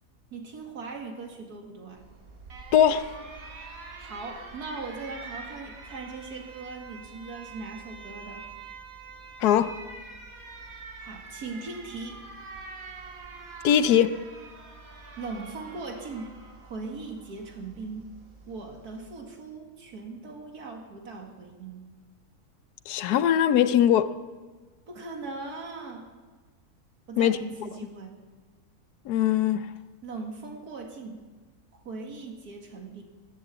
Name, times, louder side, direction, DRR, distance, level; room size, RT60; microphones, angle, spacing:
voice 1, 0.3-2.1 4.0-8.5 11.0-12.2 15.2-16.3 16.6-18.2 18.5-21.8 24.9-26.1 27.1-28.2 30.0-31.2 31.7-33.0, right 3 dB, 80° right, 2.5 m, -39 dB
Alarm, 2.0-19.2, right 4 dB, 65° right, 2.0 m, -45 dB
voice 2, 2.7-3.1 9.4-9.8 13.6-14.2 22.9-24.1 27.2-27.4 29.1-29.7, left 10 dB, 85° left, 1.2 m, -21 dB
14.0 x 11.5 x 8.1 m
omnidirectional pair, 1.6 m